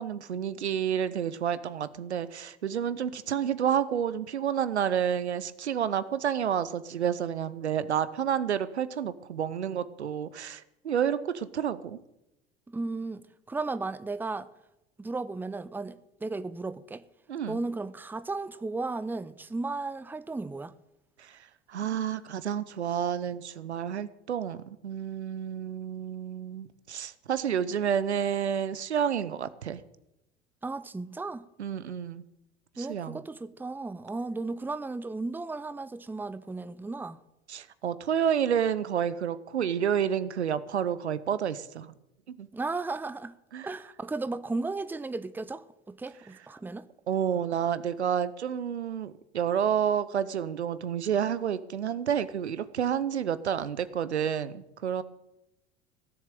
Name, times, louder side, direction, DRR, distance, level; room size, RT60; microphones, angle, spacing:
voice 1, 0.0-12.0 17.3-17.6 21.2-21.3 21.7-29.8 31.6-32.2 32.8-33.2 37.5-41.9 42.3-42.5 43.5-43.7 47.1-55.0, right 8 dB, 80° right, 0.8 m, -30 dB
voice 2, 12.7-14.5 15.0-17.0 17.5-20.7 30.6-31.5 32.8-37.2 42.5-43.4 43.6-46.9, right 3 dB, 5° right, 0.7 m, -35 dB
16.5 x 7.4 x 9.0 m
figure-of-eight pair, 70°, 33 cm